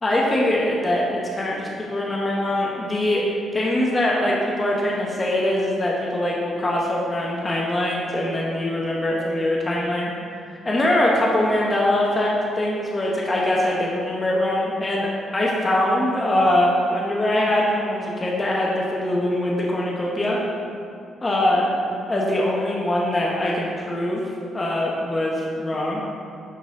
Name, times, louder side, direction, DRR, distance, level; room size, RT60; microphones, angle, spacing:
voice 1, 0.0-3.2 3.5-10.1 10.6-12.3 12.5-20.4 21.2-21.7 22.1-24.2 24.5-26.1, left 1 dB, 25° left, -3 dB, 1.1 m, -22 dB
11.0 x 4.1 x 3.7 m, 2.4 s
cardioid pair, 90°, 0 cm